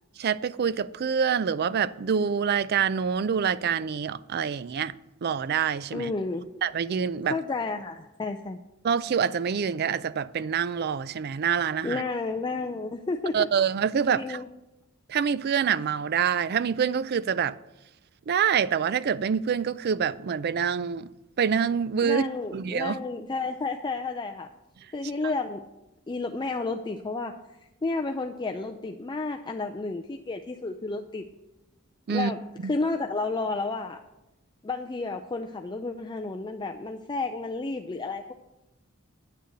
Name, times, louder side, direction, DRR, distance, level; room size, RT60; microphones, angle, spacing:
voice 1, 0.2-4.9 5.2-6.1 6.6-7.4 8.8-12.0 13.3-14.4 15.1-17.6 18.3-21.1 21.4-22.2 22.5-23.0 25.2-25.3 32.1-32.3 32.6-32.7, right 7 dB, 50° right, 0.4 m, -26 dB
voice 2, 5.9-6.5 7.3-8.6 11.8-13.5 14.1-14.5 22.0-24.5 24.9-25.6 26.1-31.2 32.1-32.4 32.7-34.0 34.6-38.3, left 3 dB, 20° left, 0.4 m, -31 dB
9.5 x 6.6 x 7.8 m
head